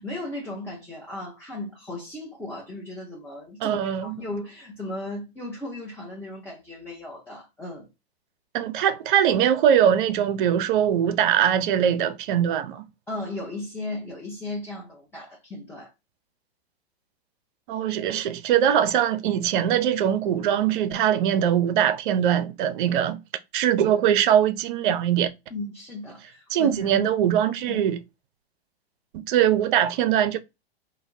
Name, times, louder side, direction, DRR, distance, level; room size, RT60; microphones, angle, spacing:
voice 1, 0.0-7.9 13.1-15.9 25.5-27.1 27.7-27.9, left 2 dB, 5° left, 0.6 m, -36 dB
voice 2, 3.6-4.2 8.5-12.9 17.7-23.2 23.5-25.3 26.5-28.0 29.1-30.4, right 9 dB, 55° right, 0.5 m, -22 dB
2.1 x 2.0 x 3.6 m
hypercardioid pair, 115°, 32 cm